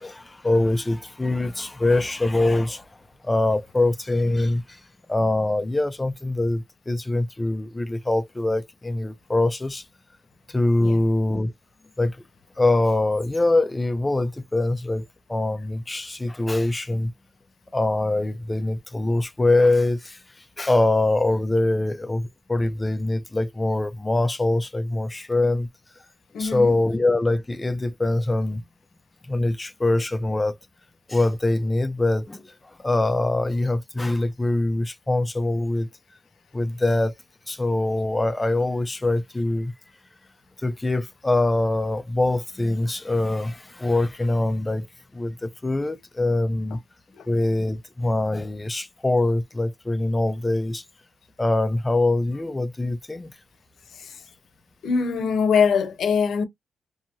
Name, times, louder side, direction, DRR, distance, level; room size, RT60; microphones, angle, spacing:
voice 1, 0.0-2.9 3.2-4.8 5.1-9.8 10.5-11.5 12.0-12.2 12.6-17.1 17.7-25.7 26.4-28.6 29.2-30.6 31.1-35.9 36.5-37.1 37.5-39.7 40.6-44.9 45.1-46.8 47.3-50.8 51.4-53.3, left 2 dB, 15° left, 0.4 m, -23 dB
voice 2, 26.3-26.7 47.1-47.3 53.9-54.2 54.8-56.4, left 6 dB, 70° left, 0.7 m, -23 dB
2.7 x 2.5 x 2.8 m
wide cardioid pair, 140°, 0 cm